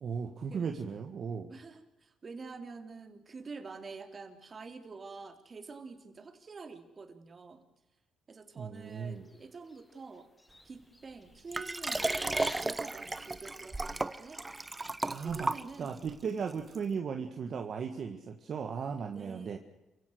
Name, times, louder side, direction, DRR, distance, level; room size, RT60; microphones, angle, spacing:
voice 1, 0.0-1.5 8.6-9.2 15.0-15.5 15.8-19.6, right 6 dB, 55° right, 5 dB, 1.8 m, -36 dB
voice 2, 1.5-7.6 8.3-10.3 10.6-14.4 15.2-16.0 19.0-19.6, right 4 dB, 35° right, 6 dB, 3.3 m, -47 dB
sound 1, 9.3-9.9 10.2-10.6 10.9-12.9 13.4-13.5, left 2 dB, 15° left, 2.2 m, -47 dB
Liquid, 11.5-16.1 16.7-16.8, right 2 dB, 20° right, 1.0 m, -34 dB
28.5 x 16.5 x 6.5 m, 0.96 s
cardioid pair, 90°, 0 cm